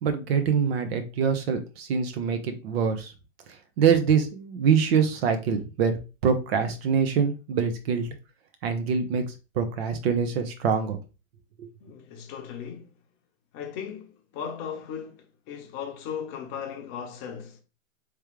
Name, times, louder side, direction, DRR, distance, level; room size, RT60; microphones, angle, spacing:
voice 1, 0.0-3.1 3.5-8.1 8.6-9.2 9.5-11.0 11.6-11.7, right 6 dB, 50° right, 0.9 m, -25 dB
voice 2, 11.8-13.0 13.5-17.6, left 7 dB, 30° left, 0.9 m, -37 dB
3.6 x 3.2 x 3.1 m
hypercardioid pair, 120°, 40 cm